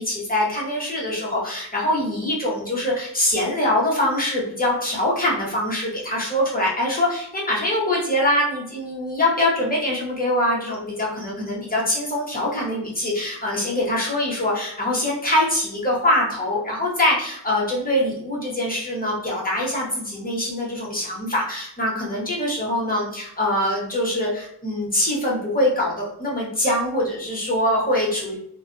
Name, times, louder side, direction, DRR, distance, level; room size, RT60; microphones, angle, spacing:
voice 1, 0.0-28.4, left 1 dB, 20° left, -5 dB, 0.8 m, -23 dB
2.4 x 2.2 x 2.4 m, 0.68 s
wide cardioid pair, 115°, 41 cm